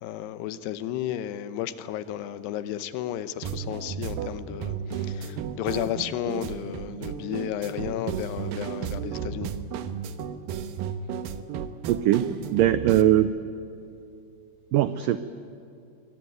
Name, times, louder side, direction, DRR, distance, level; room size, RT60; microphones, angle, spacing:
voice 1, 0.0-9.5, left 11 dB, 85° left, 3.0 m, -33 dB
sound 1, 3.4-13.0, right 7 dB, 70° right, 2.4 m, -34 dB
voice 2, 11.9-13.3 14.7-15.2, right 12 dB, 90° right, 1.9 m, -21 dB
24.0 x 21.5 x 9.5 m
omnidirectional pair, 4.7 m